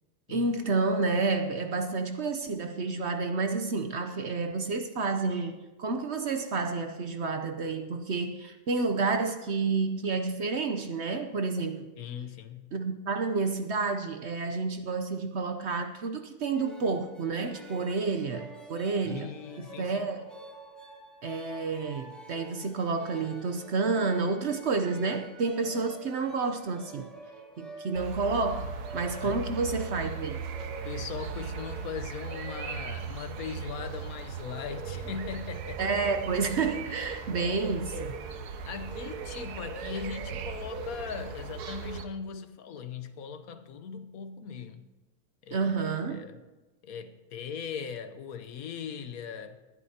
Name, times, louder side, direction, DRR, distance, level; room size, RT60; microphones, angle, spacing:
voice 1, 0.3-11.8 12.7-20.3 21.2-27.1 27.6-30.4 35.8-38.2 45.5-46.3, right 4 dB, 55° right, 0.9 m, -30 dB
voice 2, 12.0-12.7 19.0-20.1 29.2-29.5 30.8-36.0 38.6-44.9 45.4-46.4 46.8-49.6, left 6 dB, 70° left, 1.2 m, -39 dB
sound 1, 16.5-31.9, right 1 dB, ahead, 1.5 m, -48 dB
sound 2, 27.9-42.1, right 5 dB, 85° right, 1.4 m, -38 dB
19.5 x 12.0 x 2.8 m
omnidirectional pair, 1.6 m